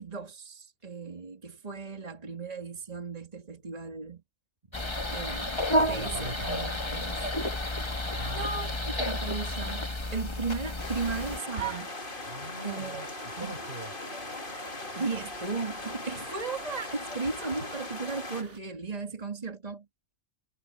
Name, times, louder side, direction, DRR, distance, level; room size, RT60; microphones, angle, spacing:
voice 1, 0.0-4.2 5.1-5.5 5.9-7.2 8.1-11.9 12.6-13.0 13.4-13.6 14.6-19.9, right 4 dB, 35° right, 2.3 m, -36 dB
sound 1, 4.7-11.4, left 1 dB, 25° left, 1.4 m, -31 dB
voice 2, 5.7-6.6 8.2-8.9 12.2-13.9, right 1 dB, 50° right, 5.7 m, -41 dB
sound 2, 10.8-18.4, left 2 dB, 45° left, 2.6 m, -39 dB
Garden Ambiance, 11.2-18.6, right 6 dB, 75° right, 4.7 m, -45 dB
omnidirectional pair, 1.2 m